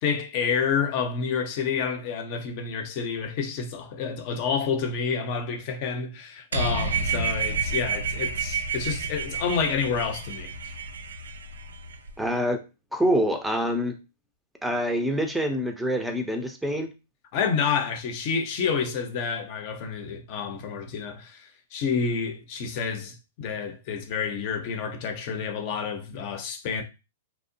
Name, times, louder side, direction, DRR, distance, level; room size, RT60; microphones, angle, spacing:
voice 1, 0.0-10.7 17.3-26.8, left 6 dB, 50° left, 0.6 m, -29 dB
sound 1, 6.5-12.1, right 4 dB, 90° right, 0.3 m, -30 dB
voice 2, 12.2-12.6 12.9-14.0 14.6-16.9, equal, 5° right, 0.5 m, -26 dB
2.8 x 2.0 x 2.6 m
hypercardioid pair, 125°, 0 cm